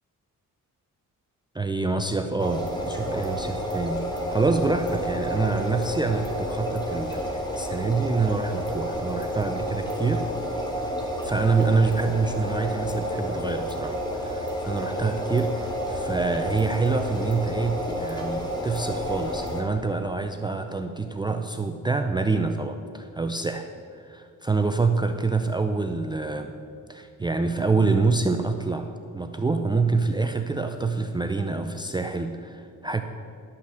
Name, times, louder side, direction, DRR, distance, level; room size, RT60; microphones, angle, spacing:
voice 1, 1.5-10.3 11.2-23.7 24.0-26.5 26.9-33.0, right 3 dB, 15° right, 6 dB, 0.5 m, -26 dB
sound 1, 2.4-19.6, equal, 10° left, 2.1 m, -30 dB
12.0 x 5.8 x 7.8 m, 2.4 s
cardioid pair, 100°, 33 cm